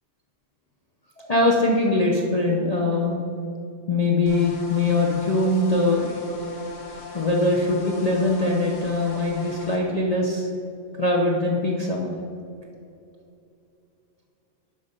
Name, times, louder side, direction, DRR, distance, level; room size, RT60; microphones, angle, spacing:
voice 1, 1.2-3.2 3.9-6.1 7.1-10.5 11.0-12.1, left 2 dB, 40° left, -1 dB, 0.6 m, -22 dB
sound 1, 4.3-9.8, left 3 dB, 70° left, 1.5 m, -39 dB
11.5 x 4.0 x 5.2 m, 2.6 s
omnidirectional pair, 1.3 m